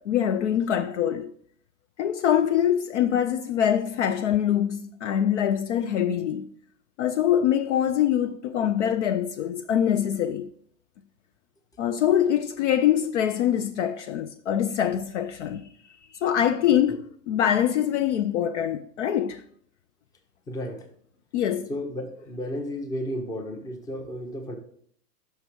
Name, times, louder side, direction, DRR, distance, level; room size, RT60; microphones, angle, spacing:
voice 1, 0.0-1.3 2.0-6.5 7.0-10.5 11.8-15.7 16.1-19.4 21.3-21.7, left 10 dB, 50° left, 0.5 m, -24 dB
voice 2, 20.5-20.9 21.7-24.6, equal, 10° left, 0.6 m, -33 dB
5.7 x 5.6 x 4.6 m
hypercardioid pair, 120°, 48 cm